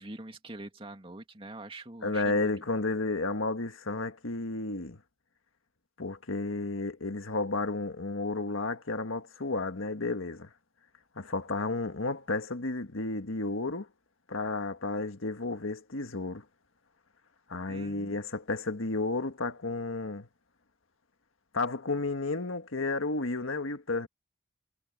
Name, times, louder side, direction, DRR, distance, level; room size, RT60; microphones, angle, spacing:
voice 1, 0.0-2.5 17.7-18.2, right 2 dB, 25° right, 2.5 m, -44 dB
voice 2, 2.0-5.0 6.0-10.5 11.2-13.9 14.3-16.4 17.5-20.3 21.5-24.1, left 3 dB, 80° left, 1.6 m, -32 dB
head